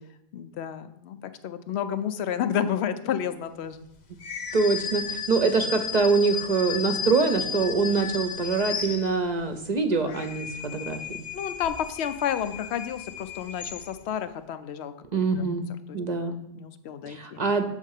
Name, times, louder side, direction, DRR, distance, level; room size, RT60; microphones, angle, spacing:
voice 1, 0.3-1.2 1.4-3.8 11.3-14.9 15.4-15.5 15.9-16.0 16.5-17.4, left 9 dB, 85° left, 12 dB, 0.9 m, -30 dB
sound 1, 4.2-9.5 9.9-14.2, left 7 dB, 50° left, 0.8 m, -34 dB
voice 2, 4.5-11.2 15.1-15.6 15.9-16.4 17.1-17.7, right 4 dB, 45° right, 6 dB, 0.7 m, -24 dB
7.3 x 3.6 x 6.4 m, 0.76 s
omnidirectional pair, 1.1 m